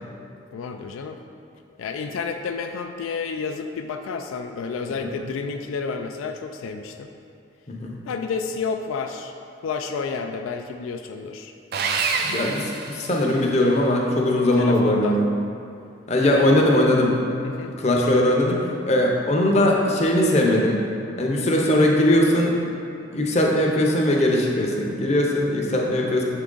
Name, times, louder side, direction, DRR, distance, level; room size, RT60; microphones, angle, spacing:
voice 1, 0.5-1.2 1.8-7.1 8.1-9.3 9.6-11.5 14.6-15.2 16.3-16.6 17.4-17.8, left 5 dB, 85° left, 5 dB, 0.3 m, -30 dB
Sawing, 11.7-13.6, right 5 dB, 50° right, 0.4 m, -27 dB
voice 2, 12.2-15.3 16.1-17.1 17.8-20.8 21.2-22.6 23.1-26.2, left 1 dB, 35° left, -1 dB, 0.6 m, -20 dB
6.8 x 3.7 x 3.7 m, 2.6 s
head